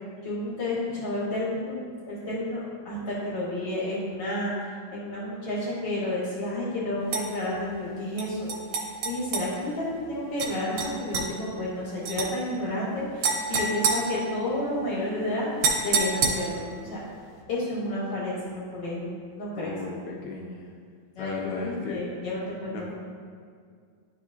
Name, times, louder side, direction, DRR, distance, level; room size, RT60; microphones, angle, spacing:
voice 1, 0.2-1.8 2.1-8.5 9.0-15.5 15.8-17.0 17.5-19.1 19.4-19.8 21.2-22.9, left 1 dB, 55° left, -6 dB, 1.8 m, -31 dB
sound 1, 7.1-7.3 8.2-9.5 10.4-10.5 10.8-11.3 12.1-12.3 13.2-14.7 15.6-16.7, right 4 dB, 75° right, 2.4 m, -27 dB
voice 2, 19.6-20.7 21.2-22.0 22.7-22.9, left 4 dB, 80° left, -1 dB, 1.6 m, -36 dB
11.0 x 5.0 x 2.6 m, 2.1 s
omnidirectional pair, 3.9 m